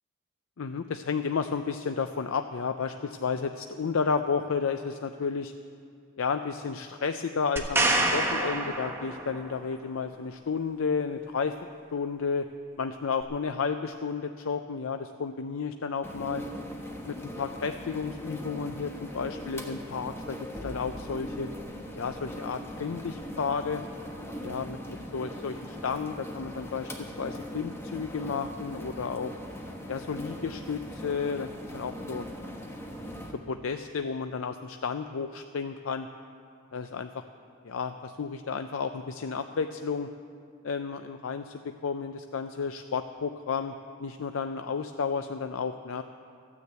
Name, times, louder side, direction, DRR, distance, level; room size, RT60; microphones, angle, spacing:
voice 1, 0.6-5.5 6.2-11.6 11.9-12.4 12.8-16.4 17.1-20.4 20.6-21.5 21.9-23.8 24.4-29.3 29.9-32.3 33.5-36.1 36.7-37.1 37.6-40.1 40.6-43.7 44.0-46.0, left 5 dB, 75° left, 8 dB, 0.5 m, -32 dB
sound 1, 7.6-9.5 13.2-13.3, right 2 dB, 10° right, 1.2 m, -27 dB
sound 2, 16.0-33.3, equal, 10° left, 1.3 m, -40 dB
14.5 x 9.8 x 8.1 m, 2.3 s
head